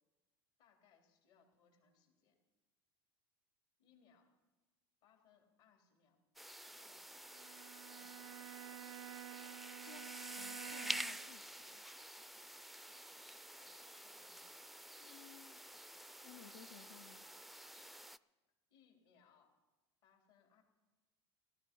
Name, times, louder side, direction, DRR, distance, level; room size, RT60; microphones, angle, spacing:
voice 1, 0.6-2.4 3.8-4.3 5.0-6.2 6.7-7.2 7.9-8.5 13.6-14.7 18.7-19.5 20.0-20.6, left 6 dB, 70° left, 2 dB, 3.5 m, -71 dB
sound 1, 6.4-18.2, right 1 dB, ahead, 0.4 m, -49 dB
Bowed string instrument, 7.3-11.3, right 14 dB, 85° right, 0.4 m, -51 dB
voice 2, 9.8-11.8 15.0-15.9 16.2-17.2, left 9 dB, 85° left, 8 dB, 0.6 m, -59 dB
17.0 x 13.0 x 5.4 m, 1.2 s
hypercardioid pair, 90°, 14 cm